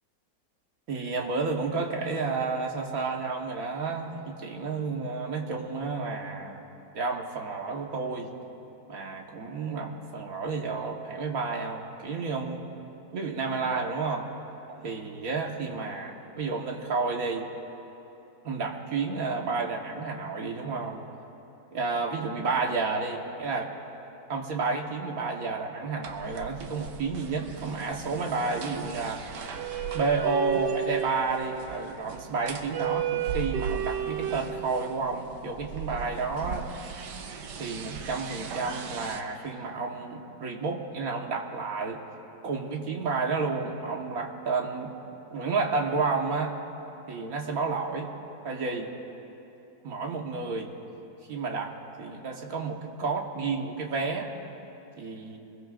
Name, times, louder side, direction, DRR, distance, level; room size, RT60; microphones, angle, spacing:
voice 1, 0.9-6.6 6.9-8.3 8.9-12.7 13.1-14.3 14.7-17.5 18.4-21.0 21.7-23.7 24.3-29.2 29.9-36.7 37.6-42.0 42.4-45.0 45.3-46.5 47.1-48.1 48.4-48.9 49.8-50.7 51.3-51.7 52.0-54.3 55.0-55.4, right 4 dB, 50° right, 1 dB, 1.7 m, -31 dB
sound 1, 26.0-39.2, right 8 dB, 70° right, 1.5 m, -35 dB
26.0 x 21.0 x 2.5 m, 2.9 s
omnidirectional pair, 2.0 m